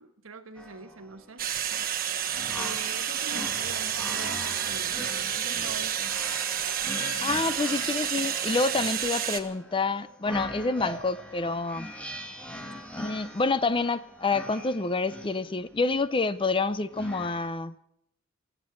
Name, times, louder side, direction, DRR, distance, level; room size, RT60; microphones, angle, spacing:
voice 1, 0.0-1.4 2.5-6.1, right 4 dB, 90° right, 7 dB, 1.4 m, -43 dB
sound 1, 0.6-17.5, equal, 5° left, 1.7 m, -41 dB
sound 2, 1.4-9.4, right 9 dB, 45° right, 1.2 m, -30 dB
voice 2, 7.2-11.9 13.0-17.7, left 3 dB, 25° left, 14 dB, 0.5 m, -28 dB
24.5 x 9.0 x 6.5 m, 0.78 s
head